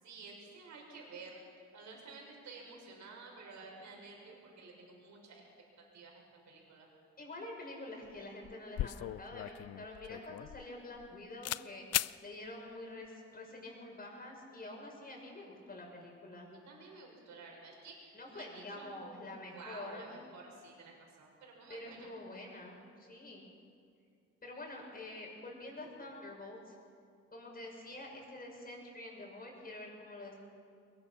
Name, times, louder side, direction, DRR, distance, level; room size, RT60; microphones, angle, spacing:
voice 1, 0.0-5.5 5.9-6.1 6.5-6.9 16.3-22.1, right 3 dB, 70° right, -1 dB, 6.3 m, -52 dB
voice 2, 7.2-16.5 18.1-20.2 21.7-23.4 24.4-26.7 27.3-30.3, left 2 dB, 30° left, 0 dB, 6.5 m, -47 dB
sound 1, 8.0-8.2 8.4-11.1 11.4-11.7 11.9-12.2, left 13 dB, 55° left, 0.5 m, -37 dB
22.0 x 21.5 x 6.0 m, 2.4 s
cardioid pair, 90°, 30 cm